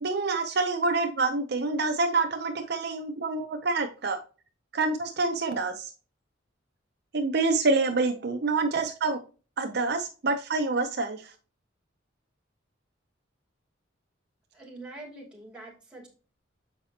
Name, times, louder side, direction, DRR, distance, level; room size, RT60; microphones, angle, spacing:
voice 1, 0.0-4.2 4.7-5.9 7.1-9.2 9.6-11.2, right 3 dB, 55° right, 5 dB, 0.7 m, -27 dB
voice 2, 14.5-16.1, right 2 dB, 5° right, -2 dB, 2.5 m, -44 dB
7.4 x 5.1 x 2.8 m, 0.35 s
head